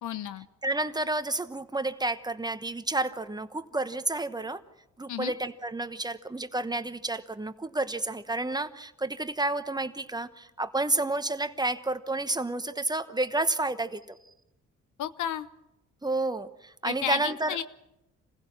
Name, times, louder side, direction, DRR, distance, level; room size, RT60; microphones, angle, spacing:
voice 1, 0.0-0.5 5.1-5.3 15.0-15.5 16.8-17.6, left 10 dB, 75° left, 13 dB, 1.0 m, -32 dB
voice 2, 0.6-4.6 5.0-14.2 16.0-17.6, right 2 dB, 15° right, 11 dB, 1.1 m, -30 dB
28.0 x 16.0 x 6.1 m, 0.91 s
cardioid pair, 90°, 30 cm